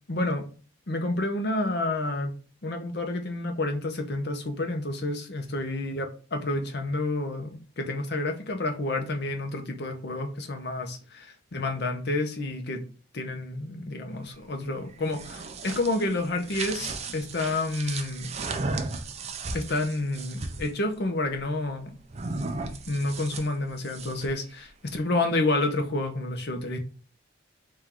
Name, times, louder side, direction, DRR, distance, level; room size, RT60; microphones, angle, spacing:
voice 1, 0.1-0.4 0.9-2.3 2.6-6.1 6.3-12.8 13.1-18.3 19.5-22.0 22.9-26.8, left 2 dB, 55° left, 0.8 m, -29 dB
sound 1, 14.9-20.7 22.1-24.4, right 3 dB, 30° right, 0.4 m, -35 dB
3.8 x 2.6 x 4.4 m
head